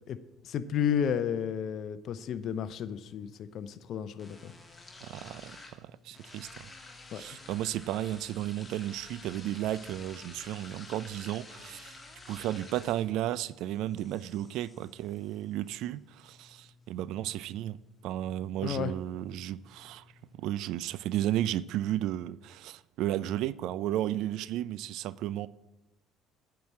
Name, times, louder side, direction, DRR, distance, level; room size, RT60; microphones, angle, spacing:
voice 1, 0.4-4.5 7.1-7.2 18.6-18.9, left 8 dB, 60° left, 0.6 m, -32 dB
sound 1, 2.3-20.3, left 2 dB, 20° left, 1.8 m, -52 dB
voice 2, 5.0-6.7 7.1-12.0 12.3-17.8 18.0-20.1 20.3-25.5, right 13 dB, 70° right, 0.3 m, -33 dB
9.5 x 4.7 x 7.4 m
hypercardioid pair, 65°, 0 cm